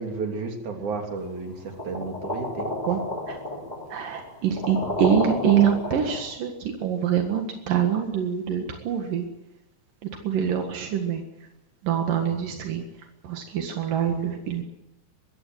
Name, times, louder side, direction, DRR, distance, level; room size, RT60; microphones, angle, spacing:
voice 1, 0.0-3.0 12.3-12.5 14.1-14.2, right 4 dB, 65° right, 3 dB, 4.5 m, -33 dB
sound 1, 1.8-6.3, left 1 dB, 15° left, 3.2 m, -31 dB
voice 2, 3.9-9.3 10.2-11.2 11.8-12.8 13.2-14.6, right 8 dB, 85° right, 4 dB, 3.5 m, -25 dB
23.0 x 16.5 x 9.6 m, 0.91 s
omnidirectional pair, 3.8 m